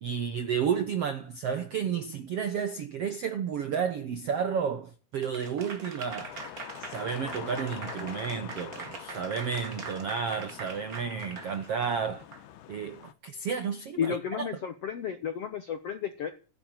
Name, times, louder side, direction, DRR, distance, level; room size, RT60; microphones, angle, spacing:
voice 1, 0.0-6.3 6.8-12.2 12.7-14.5, right 7 dB, 70° right, 1.4 m, -32 dB
Applause / Crowd, 5.2-12.4, right 4 dB, 35° right, 1.6 m, -43 dB
sound 1, 6.0-13.1, left 11 dB, 85° left, 3.4 m, -45 dB
voice 2, 14.0-16.3, left 8 dB, 65° left, 1.5 m, -32 dB
16.0 x 9.7 x 9.0 m
omnidirectional pair, 4.4 m